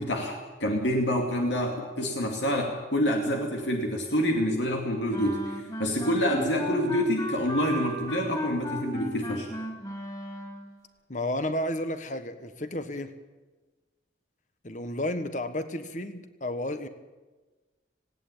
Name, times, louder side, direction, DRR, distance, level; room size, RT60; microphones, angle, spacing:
voice 1, 0.0-9.5, equal, 85° left, 1 dB, 2.5 m, -27 dB
sound 1, 5.1-10.8, equal, 25° left, 3.8 m, -35 dB
voice 2, 11.1-13.2 14.6-16.9, left 1 dB, 45° left, 10 dB, 1.3 m, -32 dB
18.5 x 17.5 x 8.7 m, 1.3 s
head